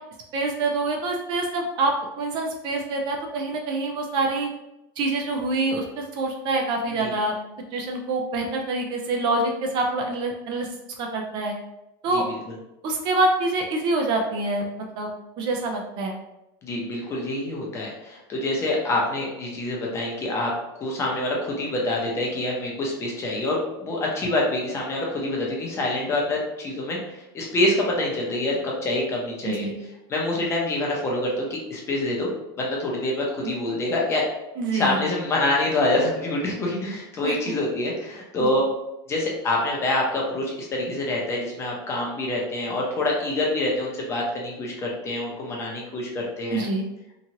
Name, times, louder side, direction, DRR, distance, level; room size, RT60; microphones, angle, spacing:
voice 1, 0.3-4.5 5.0-7.3 7.7-10.7 11.0-11.6 12.0-12.3 12.8-14.6 15.0-15.1 15.4-16.1 29.4-29.8 34.6-35.0 37.2-37.4 38.4-38.5 46.5-46.8, right 2 dB, 40° right, 2 dB, 0.4 m, -26 dB
voice 2, 16.6-20.5 20.8-29.7 30.1-32.3 32.5-34.2 34.7-38.6 39.1-46.7, left 2 dB, 20° left, -2 dB, 0.7 m, -26 dB
3.0 x 2.4 x 2.8 m, 0.91 s
supercardioid pair, 150°, 12 cm